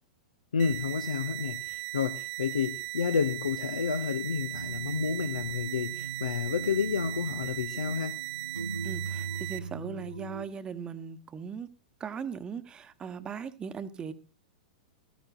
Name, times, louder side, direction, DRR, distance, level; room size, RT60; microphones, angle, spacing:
voice 1, 0.5-8.2, left 6 dB, 70° left, 0.9 m, -30 dB
sound 1, 0.6-9.6, right 21 dB, 45° right, 1.0 m, -38 dB
sound 2, 4.5-10.5, right 4 dB, 85° right, 0.6 m, -39 dB
voice 2, 8.8-11.7 12.0-14.1, right 6 dB, 20° right, 1.2 m, -39 dB
15.5 x 14.5 x 2.6 m
figure-of-eight pair, 100°, 4 cm